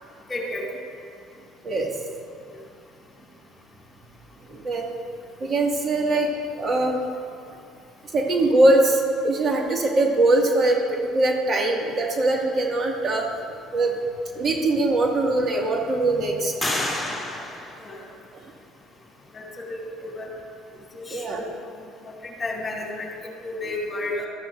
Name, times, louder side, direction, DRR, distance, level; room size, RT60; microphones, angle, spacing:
voice 1, 0.3-0.6 17.8-18.0 19.3-20.3 20.9-21.5 22.0-24.3, left 2 dB, 30° left, -1 dB, 2.4 m, -32 dB
voice 2, 4.5-4.9 5.4-6.3 6.6-7.0 8.1-10.8 11.1-13.3 13.7-13.9 14.3-16.5 21.1-21.4, right 2 dB, 40° right, 0 dB, 2.0 m, -21 dB
sound 1, 14.3-14.4 15.0-15.7 16.6-18.5, left 1 dB, 5° left, 2.9 m, -31 dB
14.0 x 13.0 x 2.6 m, 2.3 s
supercardioid pair, 75°, 0 cm